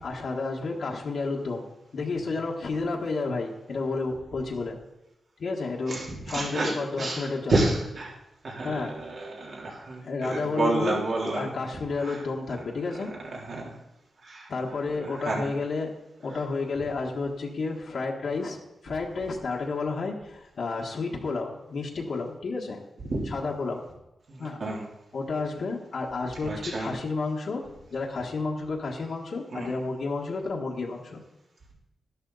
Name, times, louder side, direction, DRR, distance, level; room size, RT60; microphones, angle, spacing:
voice 1, 0.0-1.7 1.9-4.8 5.4-7.7 8.6-8.9 10.0-11.0 11.3-13.1 14.5-15.9 16.2-22.8 23.2-23.9 24.4-24.6 25.1-27.6 27.9-31.2, left 3 dB, 65° left, -2 dB, 1.6 m, -31 dB
voice 2, 5.9-6.7 7.0-8.1 8.4-11.4 12.0-12.2 13.5-13.7 14.2-14.5 15.2-15.5 24.3-24.8 26.4-26.9 29.5-29.7, right 2 dB, 60° right, -3 dB, 3.5 m, -29 dB
12.5 x 11.5 x 4.1 m, 0.93 s
wide cardioid pair, 105°, 0 cm